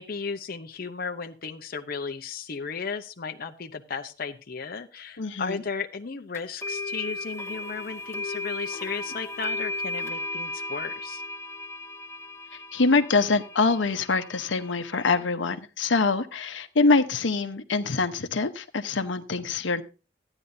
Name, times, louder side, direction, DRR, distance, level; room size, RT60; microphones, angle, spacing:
voice 1, 0.0-11.2, left 5 dB, 50° left, 5 dB, 0.8 m, -35 dB
voice 2, 5.2-5.6 12.7-19.8, left 3 dB, 85° left, 9 dB, 0.9 m, -24 dB
sound 1, 6.3-15.2, left 2 dB, 15° left, 1.5 m, -35 dB
14.5 x 9.9 x 2.7 m, 0.32 s
head